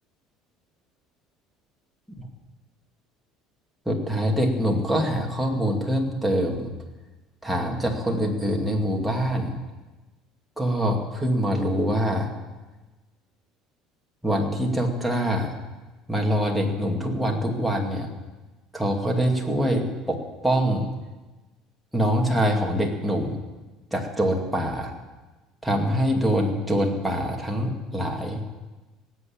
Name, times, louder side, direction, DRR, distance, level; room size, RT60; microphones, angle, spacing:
voice 1, 3.9-6.7 7.4-9.5 10.6-12.3 14.2-15.6 16.1-18.1 18.7-20.9 21.9-23.4 23.9-24.9 25.6-28.4, equal, ahead, -1 dB, 2.3 m, -24 dB
18.0 x 8.1 x 8.7 m, 1.2 s
cardioid pair, 135°, 0 cm